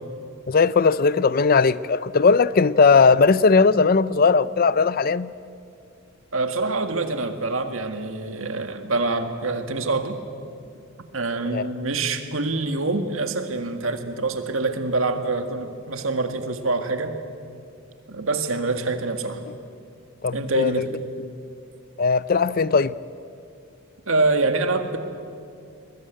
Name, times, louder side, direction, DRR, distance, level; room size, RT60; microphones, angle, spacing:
voice 1, 0.5-5.3 11.4-11.7 20.2-20.8 22.0-22.9, left 4 dB, 45° left, 18 dB, 0.5 m, -18 dB
voice 2, 6.3-10.2 11.1-17.2 18.1-19.4 20.3-20.9 24.1-25.0, right 3 dB, 75° right, 7 dB, 1.9 m, -25 dB
22.0 x 20.5 x 9.2 m, 2.4 s
head